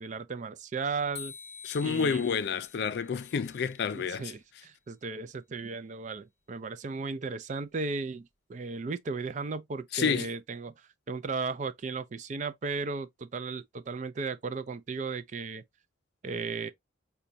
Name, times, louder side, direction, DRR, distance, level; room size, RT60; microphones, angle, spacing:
voice 1, 0.0-1.3 1.8-2.3 3.9-15.6 16.2-16.7, right 4 dB, 40° right, 0.4 m, -35 dB
sound 1, 1.2-4.2, left 6 dB, 30° left, 0.9 m, -48 dB
voice 2, 1.6-4.3 9.9-10.3, left 6 dB, 55° left, 0.3 m, -29 dB
5.0 x 2.3 x 2.6 m
head